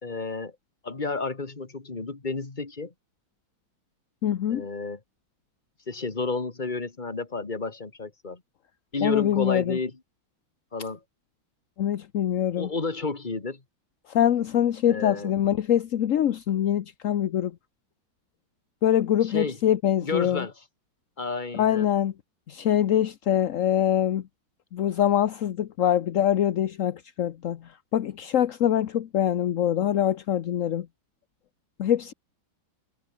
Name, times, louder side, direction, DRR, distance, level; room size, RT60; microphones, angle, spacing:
voice 1, 0.0-0.5 0.8-2.9 4.5-5.0 5.9-8.4 8.9-9.9 10.7-11.0 12.6-13.6 14.9-15.3 19.2-19.6 20.0-20.5 21.2-21.9, left 3 dB, 25° left, 2.1 m, -31 dB
voice 2, 4.2-4.6 9.0-9.8 11.8-12.7 14.1-17.5 18.8-20.5 21.5-22.1 22.5-24.2 24.7-30.9 31.8-32.1, left 10 dB, 55° left, 0.9 m, -24 dB
omnidirectional pair, 2.2 m